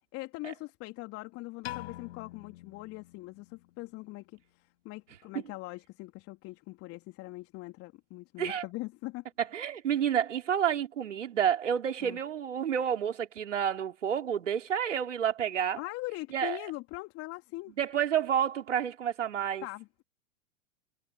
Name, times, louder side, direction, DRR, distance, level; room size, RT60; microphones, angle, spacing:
voice 1, 0.1-9.2 12.0-12.2 15.8-17.7 19.6-20.0, left 21 dB, 35° left, 3.6 m, -42 dB
Piano, 1.6-3.9, left 16 dB, 55° left, 7.9 m, -44 dB
voice 2, 9.4-15.8 16.3-16.6 17.8-19.7, right 9 dB, 70° right, 4.0 m, -29 dB
figure-of-eight pair, 105°, 38 cm